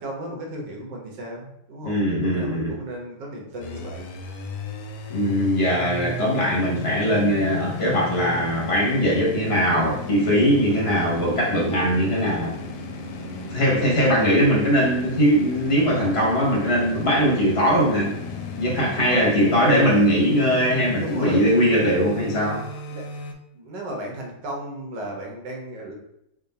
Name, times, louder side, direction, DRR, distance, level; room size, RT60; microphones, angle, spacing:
voice 1, 0.0-4.1 13.2-13.6 19.1-19.3 21.0-21.5 22.9-23.0 23.5-25.9, right 1 dB, 80° right, 0 dB, 1.5 m, -35 dB
voice 2, 1.8-2.8 5.1-12.6 13.5-18.1 18.5-22.6, equal, 50° left, -3 dB, 0.8 m, -20 dB
sound 1, 3.6-23.3, left 3 dB, 75° left, 1.1 m, -35 dB
3.7 x 2.3 x 3.9 m, 0.80 s
omnidirectional pair, 1.9 m